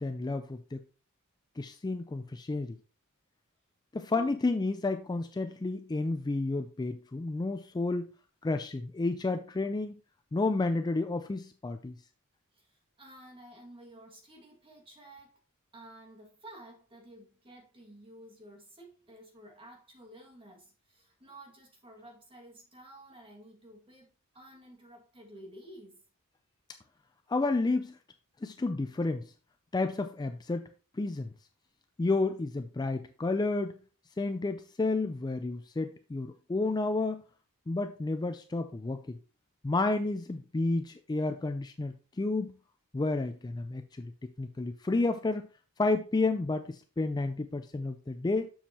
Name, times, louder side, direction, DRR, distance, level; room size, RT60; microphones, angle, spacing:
voice 1, 0.0-0.8 1.6-2.8 3.9-8.1 8.4-10.0 10.3-12.0 27.3-28.0 28.4-29.3 29.7-30.7 30.9-31.3 32.0-33.8 34.2-37.2 37.7-39.0 39.6-42.6 42.9-44.1 44.4-45.5 45.8-48.5, left 3 dB, 20° left, 0.4 m, -31 dB
voice 2, 4.1-4.4 12.5-15.4 15.7-26.0, right 1 dB, 25° right, 2.2 m, -52 dB
7.2 x 7.0 x 2.9 m
head